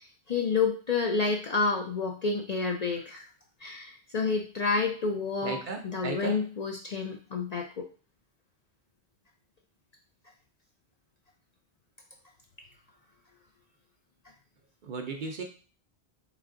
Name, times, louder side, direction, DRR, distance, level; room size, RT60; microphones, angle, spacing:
voice 1, 0.0-3.3 3.6-5.6 5.9-7.7, left 4 dB, 50° left, 1 dB, 0.5 m, -29 dB
voice 2, 5.4-6.4 14.8-15.4, right 4 dB, 55° right, 3 dB, 0.7 m, -35 dB
3.4 x 3.3 x 3.7 m, 0.38 s
omnidirectional pair, 1.1 m